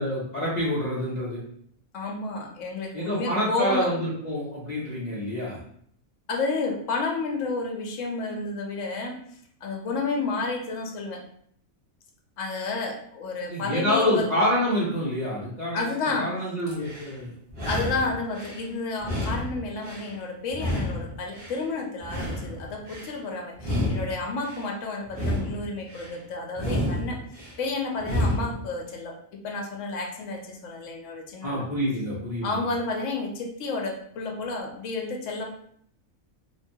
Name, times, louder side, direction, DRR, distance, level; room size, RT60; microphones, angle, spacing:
voice 1, 0.0-1.4 2.9-5.6 13.5-15.8 16.2-17.3 31.4-32.6, left 1 dB, 50° left, -8 dB, 0.5 m, -27 dB
voice 2, 1.9-3.9 6.3-9.2 9.6-11.2 12.4-14.3 15.7-16.3 17.6-27.2 27.6-31.7 32.4-35.4, left 3 dB, 70° left, 1 dB, 0.9 m, -31 dB
sound 1, 16.7-17.1 17.5-18.6 19.0-20.1 20.5-21.6 22.0-23.1 23.6-24.6 25.1-26.1 26.5-27.5 28.0-28.6, left 1 dB, 50° right, 1.1 m, -30 dB
2.9 x 2.2 x 2.6 m, 0.66 s
omnidirectional pair, 1.4 m